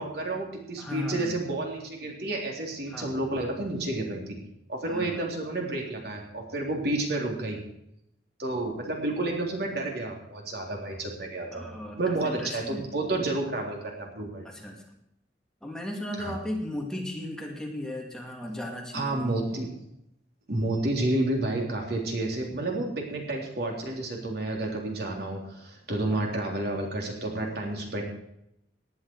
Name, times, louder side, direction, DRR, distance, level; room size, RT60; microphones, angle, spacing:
voice 1, 0.0-4.4 4.7-7.6 8.4-11.7 12.0-14.5 16.2-16.4 18.9-19.7 20.5-28.0, right 2 dB, 65° right, 0 dB, 3.7 m, -30 dB
voice 2, 0.8-1.3 2.9-3.2 4.9-5.3 11.5-12.9 14.4-14.8 15.6-19.5 26.1-26.3, left 1 dB, 5° left, -1 dB, 2.3 m, -36 dB
18.5 x 10.5 x 4.8 m, 0.80 s
head